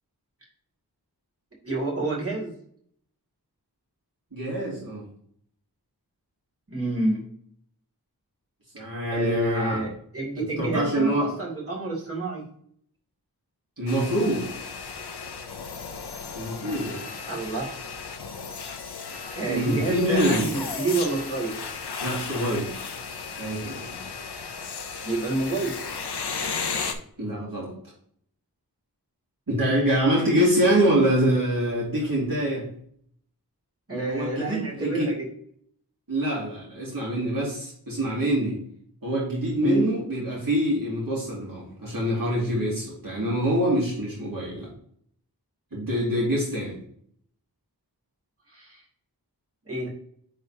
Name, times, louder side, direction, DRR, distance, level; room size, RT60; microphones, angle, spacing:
voice 1, 1.6-2.5 6.7-7.2 9.1-12.5 17.3-17.7 19.4-21.6 25.0-25.8 33.9-35.2 39.6-39.9 48.5-48.8 49.7-49.9, right 2 dB, 35° right, -5 dB, 2.6 m, -28 dB
voice 2, 4.3-5.0 8.7-9.9 10.4-11.3 13.8-14.5 16.3-17.0 19.5-20.5 22.0-22.8 23.3-24.0 27.2-27.7 29.5-32.7 33.9-35.1 36.1-38.6 39.0-44.7 45.7-46.8, equal, 60° right, -6 dB, 2.3 m, -25 dB
sound 1, 13.9-26.9, left 5 dB, 80° left, 0.7 m, -35 dB
9.8 x 3.5 x 2.8 m, 0.64 s
wide cardioid pair, 50°, 39 cm